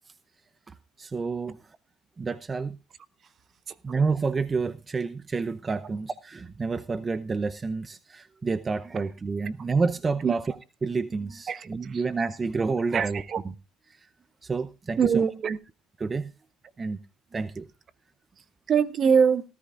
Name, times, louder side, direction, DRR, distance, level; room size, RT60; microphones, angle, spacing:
voice 1, 1.0-1.6 2.2-2.8 3.8-10.6 10.8-13.2 14.4-15.2 16.0-16.3 16.8-17.0 17.3-17.7, right 4 dB, 25° right, 0.7 m, -29 dB
voice 2, 11.5-12.0 12.9-13.4 15.0-15.6 18.7-19.4, right 6 dB, 45° right, 1.0 m, -23 dB
18.0 x 13.5 x 2.6 m
supercardioid pair, 95°, 0 cm